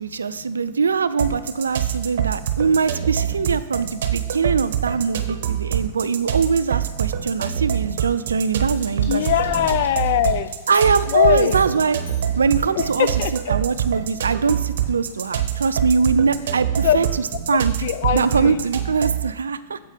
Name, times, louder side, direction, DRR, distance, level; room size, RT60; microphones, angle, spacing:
voice 1, 0.0-9.2 10.7-12.0 12.4-13.1 13.5-17.1 17.5-17.7 18.1-19.8, right 5 dB, 90° right, 14 dB, 0.3 m, -22 dB
sound 1, 1.2-19.3, right 10 dB, 70° right, 0.7 m, -25 dB
sound 2, 7.7-13.8 14.1-17.4, right 2 dB, 15° right, 2.9 m, -44 dB
sound 3, 8.6-13.2, left 3 dB, 85° left, 1.6 m, -44 dB
voice 2, 9.1-10.5 11.1-11.6 12.7-13.6 16.8-17.1 17.8-18.6, left 11 dB, 60° left, 13 dB, 0.4 m, -21 dB
7.4 x 4.8 x 5.6 m, 1.2 s
hypercardioid pair, 110°, 0 cm